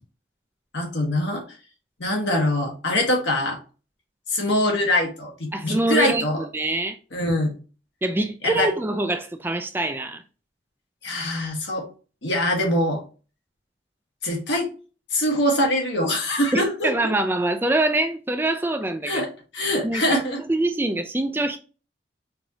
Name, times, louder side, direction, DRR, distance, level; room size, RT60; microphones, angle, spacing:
voice 1, 0.7-1.4 2.0-3.6 4.3-6.5 7.1-7.5 8.4-8.7 11.0-11.9 12.2-13.0 14.2-14.7 15.1-16.9 19.0-19.3 19.5-20.4, left 1 dB, 70° left, 1.4 m, -23 dB
voice 2, 5.5-6.2 6.5-7.0 8.0-10.2 16.5-19.2 19.8-20.2 20.5-21.6, right 2 dB, 10° right, 0.3 m, -24 dB
4.6 x 2.6 x 2.9 m
head